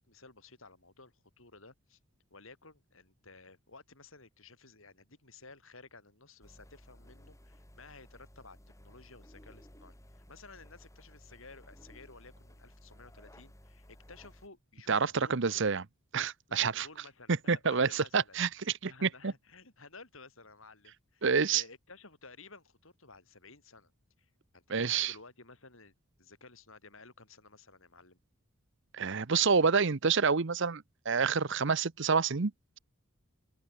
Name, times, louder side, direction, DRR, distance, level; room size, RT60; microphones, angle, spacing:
voice 1, 0.0-2.0 2.3-15.6 16.5-23.9 24.2-28.2, left 3 dB, 70° left, 6.5 m, -55 dB
sound 1, 6.4-14.5, equal, 15° left, 4.2 m, -56 dB
voice 2, 14.9-15.8 16.1-16.9 17.5-18.5 18.8-19.3 21.2-21.6 24.7-25.1 28.9-32.5, right 5 dB, 60° right, 0.8 m, -28 dB
head